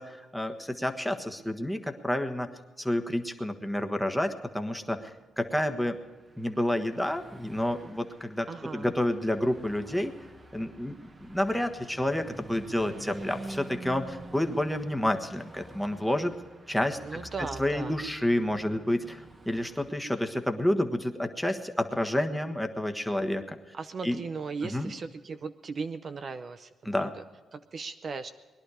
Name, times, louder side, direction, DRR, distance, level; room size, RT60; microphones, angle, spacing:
voice 1, 0.0-2.5 2.8-5.1 5.4-6.0 6.4-8.5 8.7-10.1 10.5-10.9 11.2-16.3 16.7-17.0 17.6-23.6 24.0-24.2 24.6-24.9 26.8-27.1, left 1 dB, ahead, 5 dB, 1.4 m, -29 dB
Car passing by / Truck, 5.9-19.9, right 2 dB, 25° right, 1.3 m, -47 dB
voice 2, 8.5-8.9 17.0-18.0 23.7-27.1 27.5-28.3, right 4 dB, 45° right, 9 dB, 0.6 m, -37 dB
21.0 x 11.5 x 4.9 m, 1.3 s
cardioid pair, 110°, 0 cm